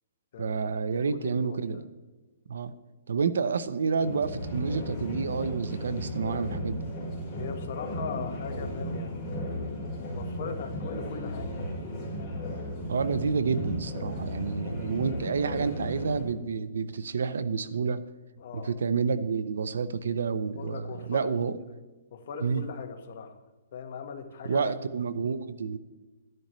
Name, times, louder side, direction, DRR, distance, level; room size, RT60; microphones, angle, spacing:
voice 1, 0.4-1.9 2.5-2.7 3.1-7.0 12.9-18.0 18.5-21.6 22.4-22.7 24.4-25.8, right 5 dB, 80° right, 14 dB, 0.7 m, -29 dB
voice 2, 0.9-1.9 7.4-9.7 10.1-11.6 15.1-15.3 18.4-18.7 20.6-21.3 21.7-21.8 22.1-23.4 23.7-24.7, left 6 dB, 45° left, 5 dB, 1.3 m, -40 dB
sound 1, 4.0-16.2, equal, 5° left, 4.2 m, -35 dB
13.5 x 11.0 x 3.1 m, 1.2 s
hypercardioid pair, 170°, 0 cm